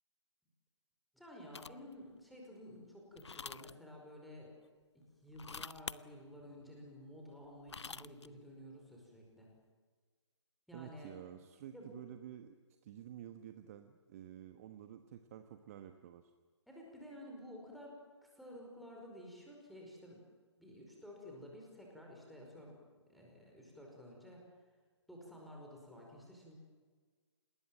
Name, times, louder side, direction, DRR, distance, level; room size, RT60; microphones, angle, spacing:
voice 1, 1.1-4.5 4.9-9.5 10.7-11.1 11.7-12.0 16.7-18.0 18.2-20.2 20.6-22.8 23.1-24.4 25.1-26.5, left 1 dB, ahead, -2 dB, 5.1 m, -52 dB
sound 1, 1.5-1.9 3.2-3.7 5.3-6.0 7.4-8.3, left 5 dB, 70° left, 0.7 m, -46 dB
voice 2, 10.7-12.6 12.8-16.3, right 10 dB, 30° right, 8 dB, 1.2 m, -51 dB
28.0 x 20.0 x 7.8 m, 1.5 s
figure-of-eight pair, 140°, 15 cm